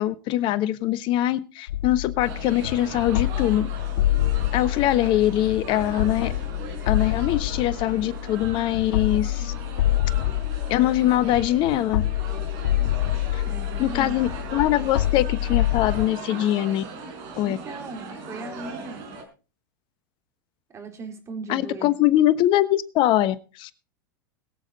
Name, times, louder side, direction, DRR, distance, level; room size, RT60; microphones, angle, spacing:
voice 1, 0.0-3.7 4.5-6.3 6.9-9.5 10.7-12.0 13.3-13.4 13.8-16.8 17.4-17.6 21.5-23.8, left 13 dB, 45° left, 15 dB, 1.1 m, -23 dB
sound 1, 1.7-16.1, left 14 dB, 75° left, 0.5 m, -27 dB
sound 2, 2.2-19.2, right 3 dB, 55° right, 4.6 m, -39 dB
voice 2, 13.5-14.2 17.4-19.1 20.7-22.0, right 3 dB, 25° right, 4 dB, 3.9 m, -37 dB
22.0 x 7.3 x 4.1 m, 0.34 s
hypercardioid pair, 100°, 11 cm